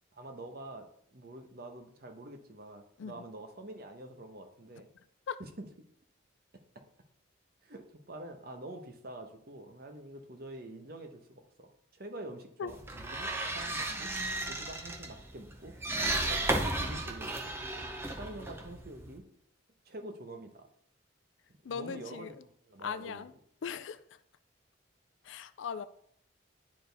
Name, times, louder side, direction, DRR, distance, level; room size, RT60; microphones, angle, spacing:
voice 1, 0.1-4.9 5.4-5.7 7.6-14.1 14.5-15.7 16.1-17.4 18.1-19.2 19.9-20.7 21.6-22.4 22.7-23.3, right 1 dB, 50° right, 0.9 m, -46 dB
sound 1, 12.7-19.2, right 2 dB, 10° right, 0.6 m, -34 dB
voice 2, 21.6-22.3 22.8-23.3 23.6-24.0 25.2-25.9, left 6 dB, 70° left, 0.4 m, -38 dB
9.8 x 4.4 x 3.4 m
head